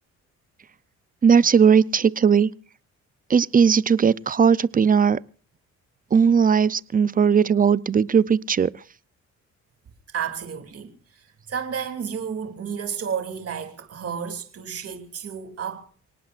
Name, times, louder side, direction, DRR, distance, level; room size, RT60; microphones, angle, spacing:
voice 1, 1.2-2.5 3.3-5.2 6.1-8.7, right 6 dB, 30° right, 0.6 m, -18 dB
voice 2, 10.1-15.8, right 7 dB, 50° right, 2.9 m, -32 dB
26.0 x 18.5 x 2.6 m
cardioid pair, 90°, 30 cm